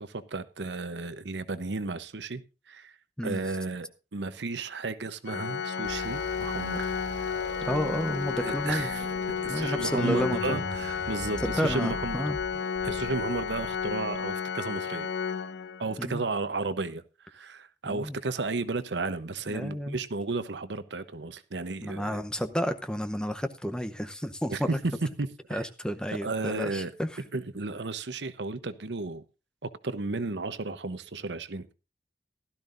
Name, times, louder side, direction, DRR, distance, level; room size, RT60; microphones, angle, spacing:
voice 1, 0.0-2.4 2.7-2.9 3.2-7.0 8.4-9.1 9.4-12.2 12.8-15.1 15.8-22.2 24.5-24.8 25.2-25.7 26.2-26.9 27.3-29.2 29.6-31.7, right 3 dB, 75° right, 0.9 m, -33 dB
Organ, 5.3-16.1, left 6 dB, 75° left, 0.8 m, -32 dB
sound 1, 5.8-14.3, equal, 55° right, 7.1 m, -42 dB
voice 2, 7.6-8.9 9.5-10.6 11.4-12.4 16.0-16.2 17.8-18.2 19.5-20.0 21.8-24.7 25.5-27.1, equal, 5° left, 0.7 m, -31 dB
16.0 x 12.5 x 2.6 m
head